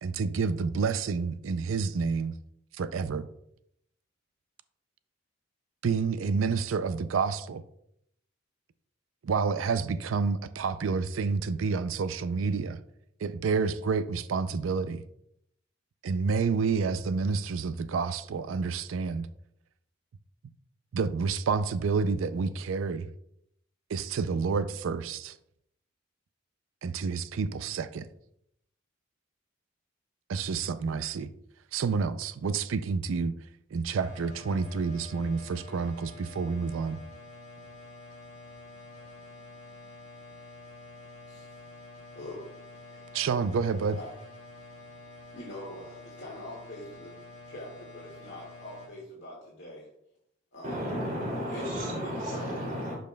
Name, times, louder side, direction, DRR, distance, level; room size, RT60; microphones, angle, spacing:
voice 1, 0.0-2.3 2.7-3.3 5.8-7.6 9.2-12.8 13.2-15.0 16.0-19.3 20.9-23.1 23.9-25.4 26.8-28.1 30.3-31.3 31.7-33.3 33.7-37.0 43.1-44.0, right 5 dB, 90° right, 0.4 m, -29 dB
sound 1, 34.0-48.9, left 2 dB, 35° left, 2.7 m, -48 dB
voice 2, 41.3-41.6 42.2-42.4 42.7-43.1 44.0-44.1 44.6-44.7 45.3-47.1 47.5-49.9 50.5-50.9 51.5-52.7, left 1 dB, 65° left, 1.9 m, -44 dB
voice 3, 50.6-52.9, equal, 40° right, 2.4 m, -33 dB
11.5 x 5.3 x 2.2 m
head